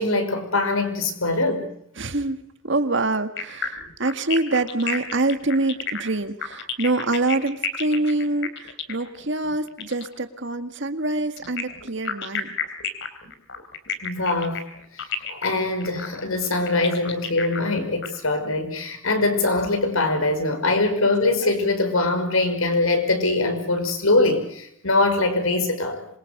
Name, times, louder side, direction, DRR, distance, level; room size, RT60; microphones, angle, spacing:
voice 1, 0.0-1.7 14.0-14.6 14.9-26.1, left 2 dB, 85° left, 7 dB, 5.8 m, -23 dB
voice 2, 2.0-12.6, right 2 dB, 60° right, 9 dB, 1.9 m, -25 dB
sound 1, 3.4-10.1 11.4-18.1, left 7 dB, 60° left, 3.6 m, -31 dB
26.5 x 23.5 x 6.7 m, 0.70 s
head